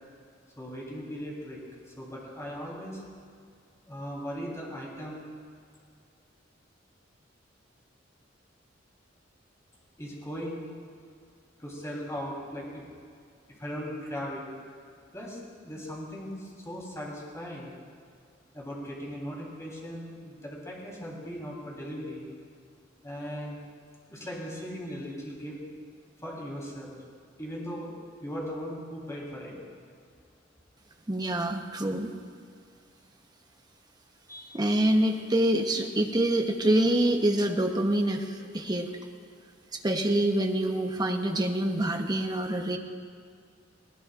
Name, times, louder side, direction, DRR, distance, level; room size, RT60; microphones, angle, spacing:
voice 1, 0.6-1.6 2.0-3.0 3.9-5.2 10.0-10.7 11.6-12.8 13.6-14.4 15.1-15.4 15.6-17.7 18.5-22.3 23.0-23.6 24.1-25.6 26.2-27.0 27.4-27.9 28.2-29.5 34.3-34.6, equal, 15° left, -4 dB, 3.7 m, -38 dB
voice 2, 31.1-32.1 34.5-38.9 39.8-42.8, right 1 dB, 20° right, 4 dB, 1.0 m, -26 dB
20.5 x 18.5 x 2.5 m, 2.2 s
head